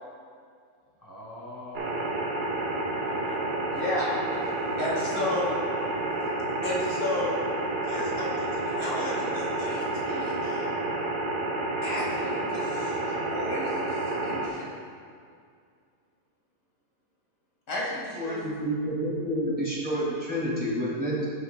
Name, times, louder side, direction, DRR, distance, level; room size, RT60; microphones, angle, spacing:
voice 1, 1.0-2.6 2.9-3.6, left 1 dB, 15° left, -6 dB, 2.2 m, -44 dB
sound 1, 1.7-14.5, right 2 dB, 75° right, 1.4 m, -30 dB
voice 2, 3.7-4.2 4.8-5.5 6.6-7.4 7.8-10.7 11.8-14.7 17.7-18.4, left 1 dB, 70° left, -6 dB, 2.5 m, -33 dB
voice 3, 18.1-21.3, equal, 5° right, -6 dB, 2.0 m, -29 dB
13.5 x 7.1 x 2.2 m, 2.2 s
omnidirectional pair, 1.5 m